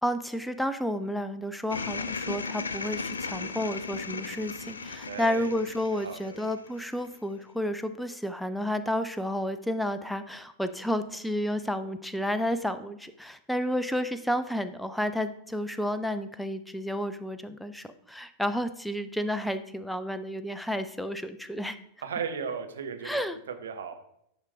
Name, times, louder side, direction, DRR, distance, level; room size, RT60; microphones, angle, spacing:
voice 1, 0.0-21.8 23.0-23.4, equal, ahead, 11 dB, 0.5 m, -31 dB
sound 1, 1.7-7.1, left 4 dB, 75° left, 0.4 m, -36 dB
voice 2, 5.0-5.5 5.9-6.4 22.0-23.2 23.6-23.9, right 6 dB, 65° right, 6 dB, 1.0 m, -35 dB
10.5 x 5.1 x 3.4 m, 0.75 s
figure-of-eight pair, 90°, 0 cm